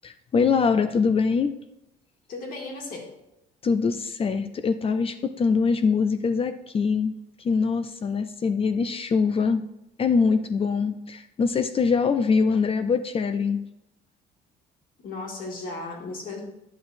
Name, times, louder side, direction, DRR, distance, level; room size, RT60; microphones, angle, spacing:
voice 1, 0.0-1.5 3.6-7.1 7.4-9.6 10.0-13.6, left 5 dB, 35° left, 10 dB, 0.4 m, -23 dB
voice 2, 2.3-3.1 15.0-16.4, left 3 dB, 55° left, 0 dB, 2.0 m, -35 dB
10.0 x 6.0 x 2.6 m, 0.84 s
cardioid pair, 110°, 17 cm